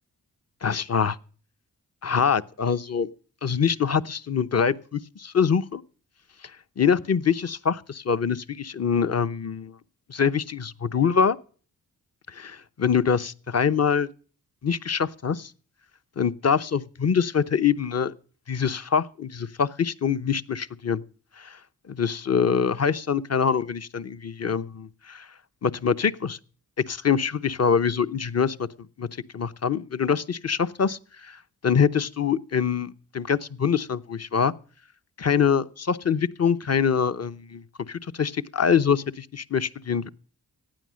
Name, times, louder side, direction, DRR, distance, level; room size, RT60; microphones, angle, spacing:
voice 1, 0.6-1.2 2.0-3.1 3.4-5.8 6.8-9.7 10.1-11.4 12.3-14.1 14.6-15.5 16.2-18.1 18.5-21.0 21.4-21.6 21.9-25.3 25.6-26.4 26.9-28.7 29.0-29.1 29.3-34.5 35.2-40.1, left 6 dB, 40° left, 0.9 m, -24 dB
15.0 x 9.6 x 6.3 m
supercardioid pair, 45°, 39 cm